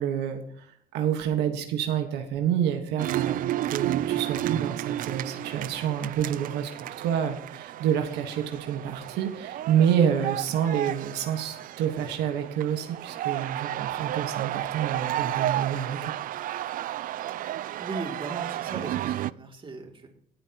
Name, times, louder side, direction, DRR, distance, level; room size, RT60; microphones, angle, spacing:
voice 1, 0.0-16.1, right 9 dB, 85° right, 5 dB, 1.5 m, -28 dB
sound 1, 3.0-19.3, right 13 dB, 55° right, 0.4 m, -32 dB
voice 2, 17.8-20.2, right 3 dB, 30° right, 2 dB, 2.8 m, -38 dB
17.5 x 9.0 x 3.0 m, 0.64 s
cardioid pair, 110°, 17 cm